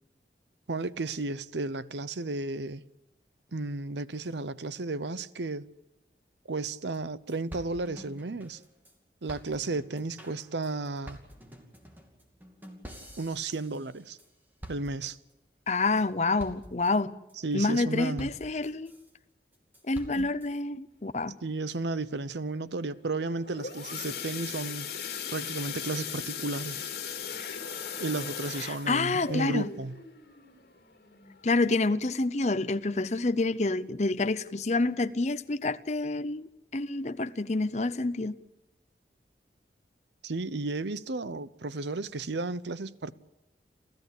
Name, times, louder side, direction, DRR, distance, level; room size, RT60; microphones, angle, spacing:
voice 1, 0.7-2.8 3.5-5.7 6.5-8.6 9.2-11.2 13.2-14.2 14.7-15.2 17.4-18.3 20.2-20.3 21.4-24.9 25.3-26.8 28.0-30.0 40.2-43.1, right 3 dB, 85° right, 0.8 m, -33 dB
sound 1, 6.6-6.7 6.9-7.0 7.3-8.9 9.3-14.3 14.6-15.3 15.7-16.0 16.4-16.9 17.3-17.8 18.2-19.1 19.5-20.5, equal, 10° right, 2.6 m, -48 dB
voice 2, 15.7-17.2 17.5-18.9 19.8-21.4 28.6-29.7 31.4-38.3, left 3 dB, 40° left, 0.7 m, -28 dB
sound 2, 23.2-31.9 32.3-32.6 32.9-33.0 33.5-33.6, left 7 dB, 60° left, 3.2 m, -38 dB
28.5 x 14.5 x 8.3 m
head